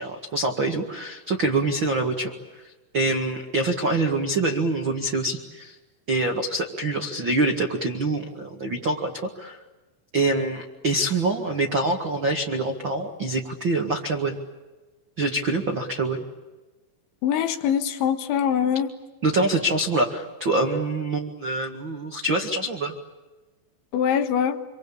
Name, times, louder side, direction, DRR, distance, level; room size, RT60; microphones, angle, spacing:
voice 1, 0.0-2.3 2.9-5.7 6.1-9.1 9.4-9.6 10.1-14.4 15.2-16.2 19.2-22.9, right 2 dB, 60° right, 3 dB, 1.2 m, -25 dB
voice 2, 17.2-18.9 23.9-24.6, left 8 dB, 75° left, 7 dB, 3.6 m, -23 dB
27.0 x 25.5 x 8.6 m, 1.2 s
omnidirectional pair, 5.6 m